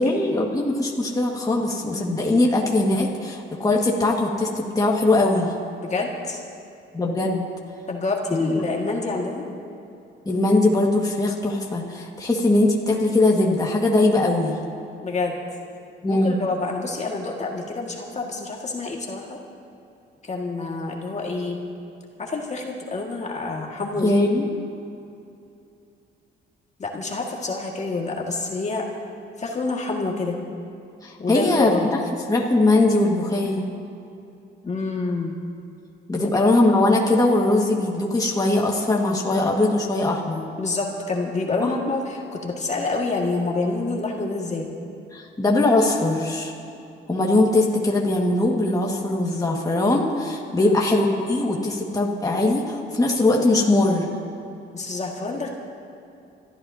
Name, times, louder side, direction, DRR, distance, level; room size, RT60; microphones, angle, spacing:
voice 1, 0.0-5.5 6.9-7.4 8.4-8.6 10.2-14.6 16.0-16.4 24.0-24.5 31.0-31.7 32.3-33.7 36.1-40.4 41.6-41.7 45.1-46.5 47.1-54.1, left 2 dB, 15° left, -2 dB, 1.8 m, -21 dB
voice 2, 5.8-6.4 7.9-9.5 15.0-15.3 16.1-19.4 20.2-21.6 22.2-24.2 26.8-28.9 29.4-30.4 31.2-31.9 34.6-35.3 40.6-44.7 50.6-50.8 54.7-55.5, left 3 dB, 35° left, 0 dB, 1.9 m, -27 dB
29.0 x 13.0 x 2.8 m, 2.7 s
cardioid pair, 90°, 20 cm